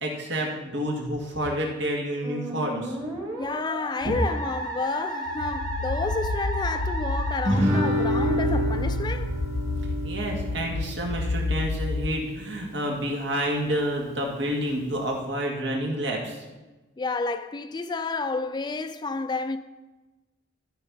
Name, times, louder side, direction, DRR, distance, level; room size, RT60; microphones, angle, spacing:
voice 1, 0.0-3.0 4.0-4.1 7.5-7.8 10.0-16.4, equal, 75° right, 2.0 m, -29 dB
Musical instrument, 2.2-7.5, right 1 dB, 20° right, 1.3 m, -34 dB
voice 2, 3.4-9.3 17.0-19.6, left 3 dB, 20° left, 0.3 m, -30 dB
sound 1, 5.3-12.1, left 2 dB, 75° left, 0.5 m, -30 dB
Guitar, 7.4-12.5, equal, 35° right, 2.7 m, -28 dB
13.0 x 4.4 x 5.5 m
head